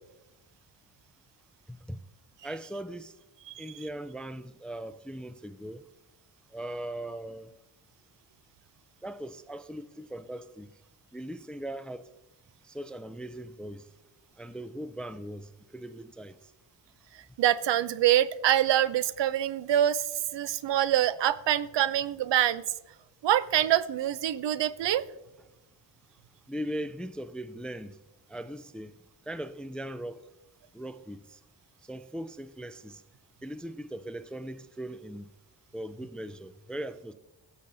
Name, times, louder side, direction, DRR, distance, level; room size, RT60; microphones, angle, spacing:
voice 1, 1.7-2.0 2.4-3.2 3.6-5.8 6.5-7.5 9.0-10.7 11.1-12.1 12.6-13.9 14.4-16.4 26.5-28.0 28.3-28.9 29.3-30.2 30.7-31.4 31.9-33.0 33.4-35.3 35.7-37.1, right 1 dB, ahead, 0.4 m, -39 dB
voice 2, 17.4-22.6 23.2-25.0, right 11 dB, 70° right, 0.6 m, -25 dB
16.0 x 7.0 x 2.6 m
cardioid pair, 65°, 46 cm